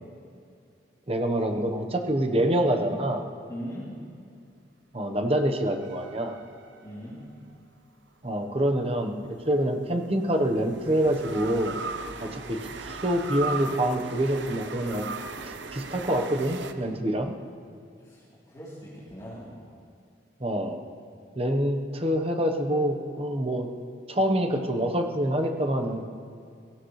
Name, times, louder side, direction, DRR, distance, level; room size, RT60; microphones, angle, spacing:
voice 1, 1.1-3.2 4.9-6.4 8.2-9.1 9.5-11.8 12.2-15.0 15.4-17.3 20.4-20.8 21.4-23.7 24.1-26.0, right 1 dB, 30° right, 4 dB, 1.1 m, -26 dB
voice 2, 3.5-3.9 6.8-7.3 18.0-19.5, equal, 20° left, -10 dB, 3.4 m, -40 dB
sound 1, 5.8-7.3 9.2-16.7, right 4 dB, 75° right, 0.9 m, -38 dB
23.5 x 16.0 x 3.3 m, 2.4 s
head